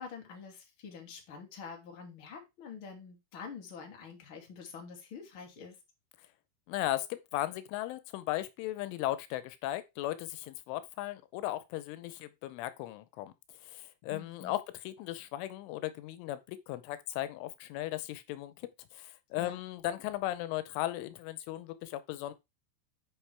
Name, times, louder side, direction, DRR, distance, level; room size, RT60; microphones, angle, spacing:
voice 1, 0.0-5.8 14.1-14.6 19.4-19.6, left 5 dB, 35° left, 2.5 m, -46 dB
voice 2, 6.7-13.3 13.6-22.3, left 15 dB, 90° left, 3.3 m, -37 dB
10.0 x 5.3 x 3.4 m
omnidirectional pair, 5.4 m